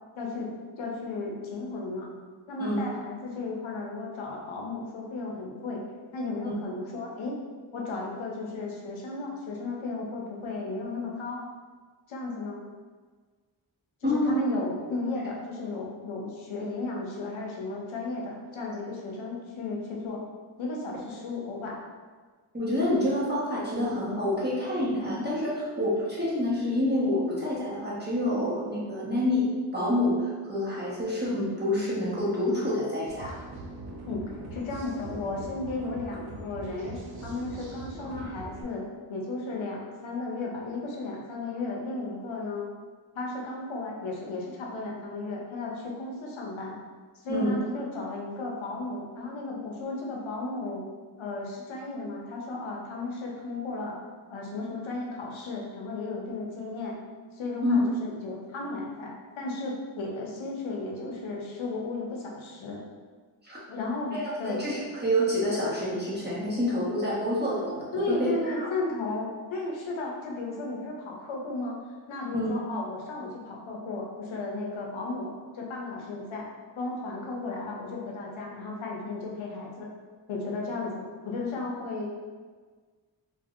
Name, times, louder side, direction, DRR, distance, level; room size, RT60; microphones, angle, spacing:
voice 1, 0.1-2.1 2.5-5.8 6.1-7.4 7.7-11.4 12.1-12.6 14.0-20.2 20.6-21.7 34.0-34.2 34.5-42.7 43.1-46.8 47.2-50.8 51.2-54.0 54.3-57.0 57.4-62.8 63.7-64.7 67.9-71.8 72.1-76.5 76.8-79.9 80.3-82.1, left 3 dB, 85° left, -2 dB, 0.7 m, -34 dB
voice 2, 14.0-14.4 22.5-29.5 29.7-33.4 47.3-47.5 57.6-57.8 63.4-63.6 64.1-68.7 72.3-72.5, left 1 dB, 20° right, -7 dB, 1.3 m, -27 dB
sound 1, 33.1-38.6, right 2 dB, 55° right, 0.7 m, -41 dB
3.7 x 2.5 x 2.5 m, 1.5 s
cardioid pair, 40°, 46 cm